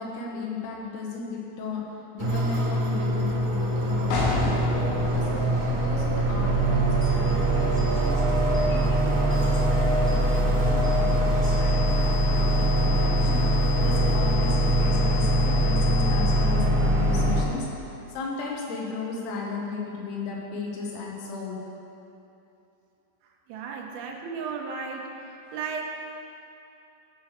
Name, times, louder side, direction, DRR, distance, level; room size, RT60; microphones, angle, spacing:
voice 1, 0.0-8.2 8.5-21.6 24.0-24.2, left 4 dB, 90° left, -2 dB, 4.1 m, -36 dB
sound 1, 2.2-17.4, right 1 dB, 70° right, 1.6 m, -23 dB
sound 2, 4.1-9.7, left 3 dB, 70° left, 3.6 m, -33 dB
sound 3, 7.0-7.2 7.8-7.9 8.5-8.7 9.3-9.5 10.1-10.2 10.8-11.0 11.4-16.4, left 12 dB, 40° left, 1.3 m, -39 dB
voice 2, 23.5-25.1 25.5-25.8, right 5 dB, 90° right, 1 dB, 3.5 m, -34 dB
15.5 x 5.8 x 4.6 m, 2.8 s
omnidirectional pair, 6.0 m